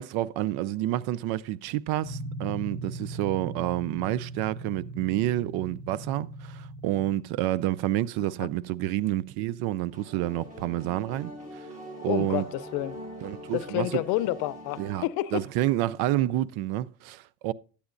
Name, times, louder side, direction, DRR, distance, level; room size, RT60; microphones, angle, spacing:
voice 1, 0.0-11.7 12.0-12.5 13.2-14.0 14.8-15.0 15.3-17.5, right 14 dB, 70° right, 0.5 m, -29 dB
sound 1, 2.0-7.1, right 2 dB, 25° left, 1.6 m, -39 dB
sound 2, 9.9-15.0, equal, 20° right, 4.8 m, -42 dB
voice 2, 12.1-12.9 13.5-15.4, left 16 dB, 70° left, 0.6 m, -29 dB
12.5 x 8.5 x 2.5 m
supercardioid pair, 110°, 39 cm